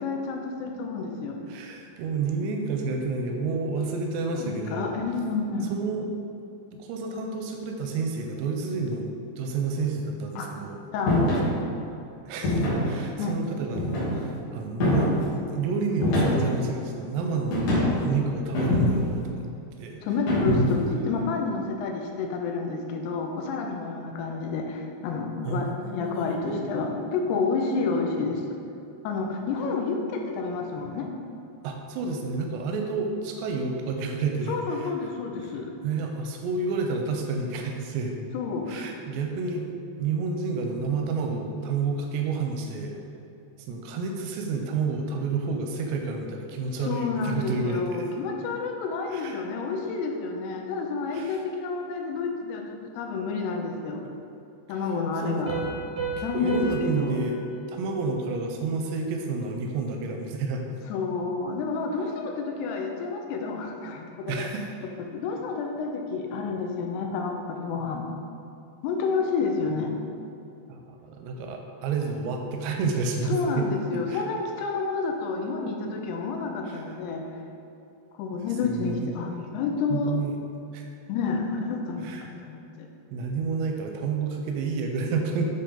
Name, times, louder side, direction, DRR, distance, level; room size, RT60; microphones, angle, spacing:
voice 1, 0.0-1.4 4.4-5.7 10.4-10.5 10.9-11.4 13.2-13.3 20.0-28.6 29.0-31.1 34.5-35.7 38.3-38.9 46.8-54.0 54.7-55.6 56.2-57.2 60.9-64.4 65.1-68.1 68.8-69.9 73.3-77.2 78.1-80.1 81.1-82.6, left 4 dB, 80° left, 2 dB, 2.7 m, -29 dB
voice 2, 1.5-4.9 5.7-6.1 6.8-9.1 9.4-10.8 12.3-17.6 18.0-19.2 19.8-20.0 25.4-26.6 31.6-34.9 35.4-35.5 35.8-38.2 38.7-39.7 40.0-43.0 43.6-47.8 49.1-49.4 51.1-51.4 55.2-55.6 56.2-57.4 57.7-60.6 64.3-64.6 70.7-74.2 76.7-77.0 78.6-79.2 79.9-80.4 80.7-80.8 82.0-82.3 83.1-85.4, right 4 dB, 90° right, 2 dB, 2.7 m, -30 dB
sound 1, 11.1-11.5 12.4-12.9 13.8-14.3 14.8-15.3 16.0-16.6 17.5-18.0 18.5-19.2 20.3-20.9, left 1 dB, 55° left, 2.6 m, -24 dB
Piano, 55.5-58.9, right 5 dB, 60° right, 1.2 m, -35 dB
9.4 x 3.4 x 3.8 m, 2.6 s
omnidirectional pair, 4.8 m